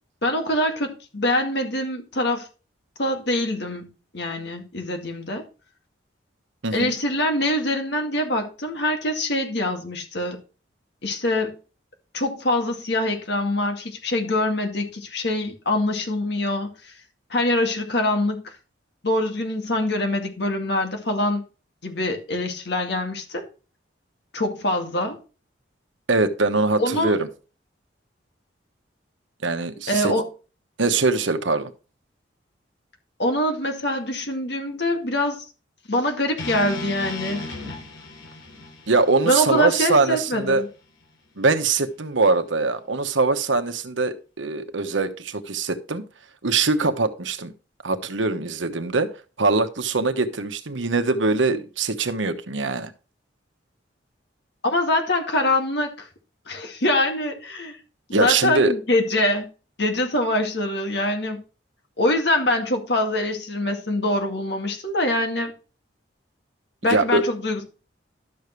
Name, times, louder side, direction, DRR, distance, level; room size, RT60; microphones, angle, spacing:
voice 1, 0.2-2.5 3.0-3.9 4.1-5.4 6.7-10.4 11.0-11.5 12.1-16.9 17.3-18.6 19.0-21.4 21.8-23.4 24.3-25.2 26.8-27.1 29.9-30.3 33.2-35.4 35.9-37.5 39.2-40.7 54.6-56.1 56.5-57.8 58.1-59.4 59.8-61.4 62.0-65.5 66.8-67.6, left 1 dB, 60° left, 2.2 m, -24 dB
voice 2, 26.1-27.3 29.4-30.1 30.8-31.7 38.9-40.6 41.4-46.0 46.4-47.5 47.8-49.1 49.4-52.9 58.1-58.7 66.9-67.2, right 3 dB, 75° right, 1.1 m, -22 dB
sound 1, 36.4-40.5, left 2 dB, 75° left, 3.1 m, -36 dB
12.0 x 6.8 x 3.2 m
head